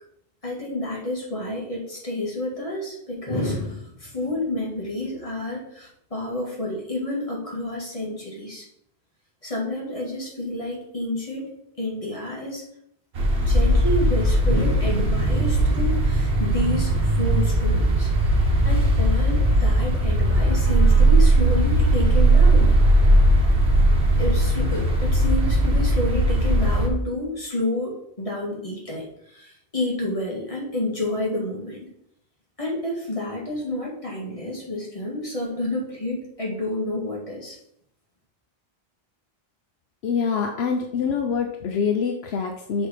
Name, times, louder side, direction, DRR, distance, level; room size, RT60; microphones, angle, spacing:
voice 1, 0.4-8.7 9.4-11.5 11.8-12.6 13.4-18.1 18.6-22.8 24.2-31.8 32.6-37.6, left 1 dB, 35° left, -3 dB, 2.0 m, -29 dB
sound 1, 13.1-26.9, right 1 dB, 85° right, 1.4 m, -18 dB
voice 2, 40.0-42.9, left 6 dB, 85° left, 3 dB, 1.0 m, -25 dB
6.2 x 4.2 x 5.0 m, 0.72 s
omnidirectional pair, 1.0 m